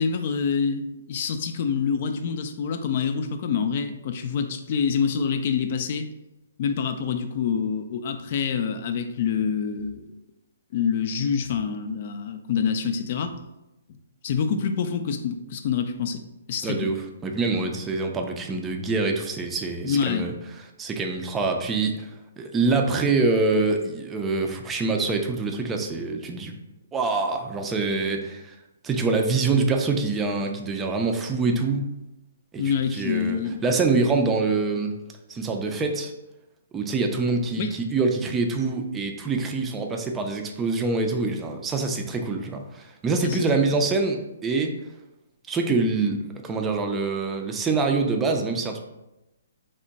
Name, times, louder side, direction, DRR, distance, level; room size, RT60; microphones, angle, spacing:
voice 1, 0.0-6.0 6.6-10.0 10.7-13.4 14.2-16.2 16.5-16.9 19.8-20.3 32.6-33.6 37.6-37.8 43.2-43.4 43.7-43.8, left 6 dB, 50° left, 8 dB, 0.4 m, -26 dB
voice 2, 16.6-20.3 20.8-22.1 22.4-26.5 26.9-28.5 28.8-31.8 32.5-35.0 35.3-36.1 36.7-44.7 45.5-48.8, right 3 dB, 15° right, 3 dB, 0.4 m, -25 dB
3.5 x 2.1 x 3.9 m, 0.95 s
hypercardioid pair, 135°, 0 cm